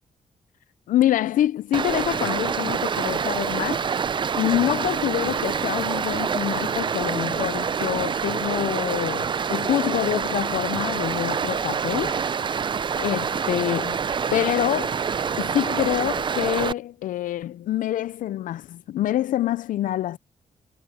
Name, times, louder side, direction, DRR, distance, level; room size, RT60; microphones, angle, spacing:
voice 1, 0.9-3.9 4.4-12.2 13.0-14.0 14.3-15.0 15.4-20.2, left 13 dB, 85° left, 0.4 m, -26 dB
Stream, 1.7-16.7, right 6 dB, 35° right, 0.4 m, -26 dB
cardioid pair, 110°, 13 cm